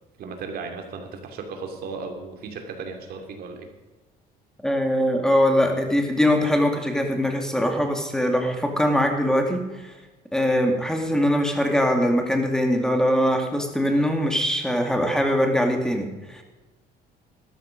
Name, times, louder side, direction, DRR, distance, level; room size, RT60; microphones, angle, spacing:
voice 1, 0.2-3.7, right 4 dB, 65° right, 4 dB, 2.7 m, -35 dB
voice 2, 4.6-9.9 10.3-16.4, equal, 5° left, 3 dB, 2.3 m, -22 dB
13.0 x 12.5 x 5.2 m, 1.2 s
cardioid pair, 110°, 17 cm